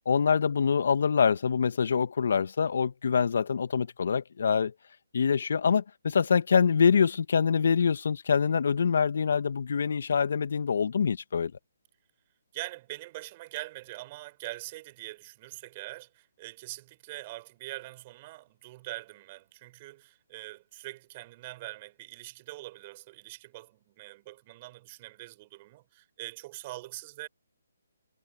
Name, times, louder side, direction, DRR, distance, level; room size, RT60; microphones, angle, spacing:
voice 1, 0.0-4.7 5.1-11.5, left 6 dB, 60° left, 1.6 m, -25 dB
voice 2, 12.5-27.3, right 19 dB, 30° right, 4.4 m, -43 dB
figure-of-eight pair, 145°, 0 cm